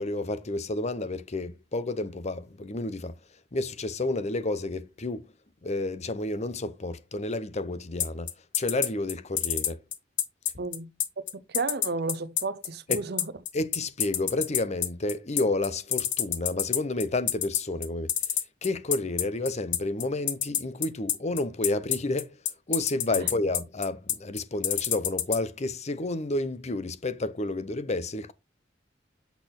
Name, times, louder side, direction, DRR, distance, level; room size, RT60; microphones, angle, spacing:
voice 1, 0.0-3.1 3.5-5.3 5.6-8.3 8.6-9.8 12.9-13.0 13.5-18.1 18.6-22.3 22.7-28.3, left 2 dB, 40° left, 0.8 m, -30 dB
sound 1, 8.0-25.4, left 11 dB, 75° left, 1.3 m, -26 dB
voice 2, 10.6-10.9 11.2-13.3 23.1-23.3, right 3 dB, 60° right, 0.7 m, -33 dB
8.2 x 4.2 x 3.8 m
head